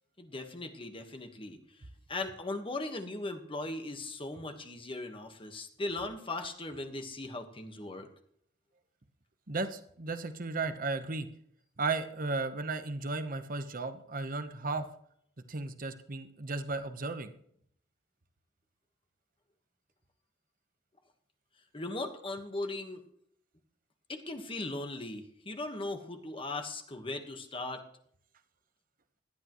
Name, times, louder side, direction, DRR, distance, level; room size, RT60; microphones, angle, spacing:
voice 1, 0.2-1.6 2.1-8.1 21.7-23.0 24.1-27.8, left 2 dB, 30° left, 6 dB, 1.4 m, -38 dB
voice 2, 9.5-11.3 11.8-14.8 15.5-17.3, right 3 dB, 50° right, 9 dB, 1.0 m, -35 dB
18.0 x 12.0 x 3.1 m, 0.66 s
head